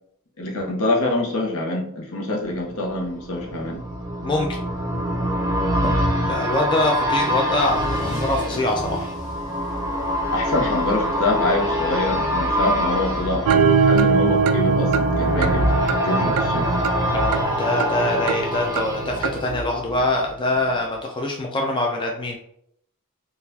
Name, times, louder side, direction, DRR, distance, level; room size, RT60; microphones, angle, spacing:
voice 1, 0.4-3.8 10.3-15.6 16.0-16.7, left 2 dB, 70° left, -1 dB, 0.9 m, -25 dB
sound 1, 2.5-20.3 20.7-20.8, equal, 15° right, 0.6 m, -25 dB
voice 2, 6.2-9.1 17.1-22.4, left 2 dB, 20° left, 0 dB, 0.4 m, -24 dB
Car / Engine starting / Accelerating revving vroom, 6.7-13.9, equal, 40° left, 1.4 m, -39 dB
sound 2, 13.5-19.5, right 5 dB, 75° right, 0.3 m, -22 dB
3.9 x 2.4 x 2.7 m, 0.69 s
head